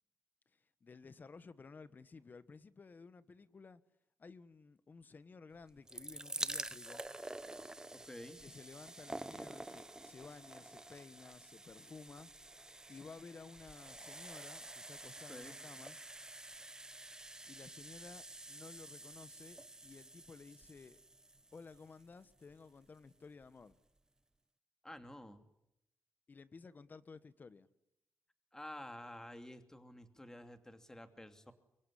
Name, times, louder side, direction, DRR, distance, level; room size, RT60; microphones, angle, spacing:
voice 1, 0.8-3.8 4.2-7.0 8.4-12.3 12.9-16.0 17.5-21.0 21.5-23.8 26.3-27.7, left 4 dB, 40° left, 1.4 m, -55 dB
sound 1, 5.6-22.7 23.4-23.5 23.7-23.8, right 2 dB, 15° right, 1.0 m, -48 dB
voice 2, 7.9-8.4 15.3-15.6 24.8-25.4 28.5-31.5, left 1 dB, 10° left, 2.8 m, -50 dB
25.0 x 23.0 x 10.0 m
cardioid pair, 95°, 5 cm